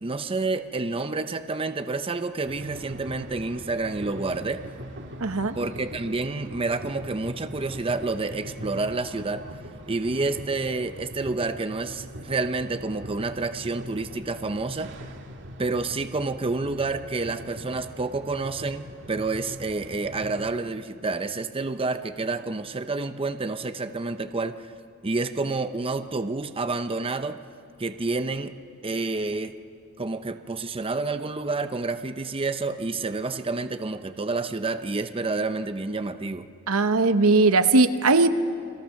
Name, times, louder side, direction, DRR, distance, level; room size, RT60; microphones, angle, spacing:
voice 1, 0.0-4.6 5.5-9.5 9.9-15.0 15.6-24.6 25.0-27.4 27.8-28.6 28.8-29.5 30.0-36.5, right 3 dB, 25° right, 9 dB, 0.7 m, -29 dB
sound 1, 2.5-20.5, equal, 60° right, 1.8 m, -41 dB
voice 2, 5.2-5.5 36.7-38.3, right 3 dB, 80° right, 10 dB, 1.0 m, -19 dB
29.5 x 23.0 x 6.5 m, 2.4 s
head